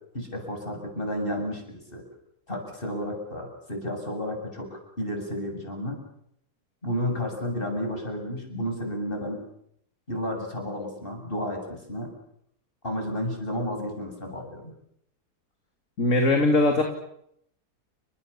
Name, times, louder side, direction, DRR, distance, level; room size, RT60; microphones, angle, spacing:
voice 1, 0.1-2.0 2.5-4.7 5.0-6.0 6.8-9.4 10.1-12.1 12.8-14.7, equal, 35° left, 3 dB, 8.0 m, -32 dB
voice 2, 16.0-16.8, left 2 dB, 50° left, 4 dB, 3.0 m, -20 dB
30.0 x 26.5 x 7.1 m, 0.74 s
omnidirectional pair, 1.7 m